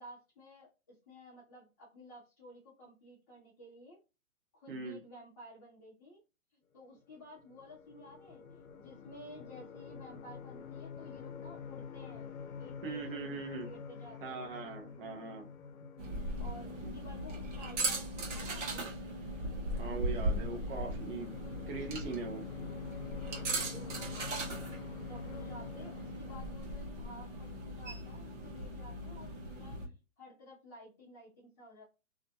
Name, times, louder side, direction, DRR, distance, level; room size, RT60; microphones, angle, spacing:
voice 1, 0.0-4.0 4.5-6.2 6.7-14.5 16.4-18.9 23.5-29.8 30.2-31.8, left 1 dB, 15° left, -10 dB, 0.5 m, -53 dB
voice 2, 4.7-5.0 12.8-13.7 14.2-15.5 16.8-16.9 19.7-21.3 21.7-22.4, right 4 dB, 40° right, 1 dB, 0.7 m, -41 dB
sound 1, 7.1-26.6, left 6 dB, 80° left, 0.6 m, -48 dB
sound 2, 16.0-29.9, right 1 dB, 60° right, 1.0 m, -38 dB
2.5 x 2.1 x 2.7 m, 0.29 s
hypercardioid pair, 150°, 41 cm